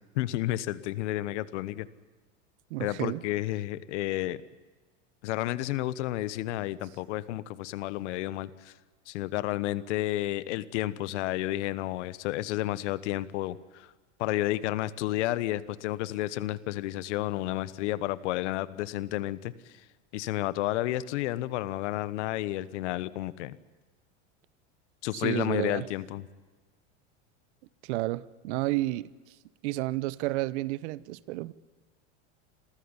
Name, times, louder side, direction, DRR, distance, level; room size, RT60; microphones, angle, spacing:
voice 1, 0.1-1.9 2.8-4.4 5.2-8.7 9.1-13.9 14.2-19.5 20.1-23.6 25.0-26.3, left 16 dB, 75° left, 1.3 m, -31 dB
voice 2, 2.7-3.2 25.1-25.9 27.8-29.1 29.6-31.5, right 18 dB, 70° right, 1.0 m, -31 dB
27.5 x 14.5 x 9.9 m
supercardioid pair, 105°, 36 cm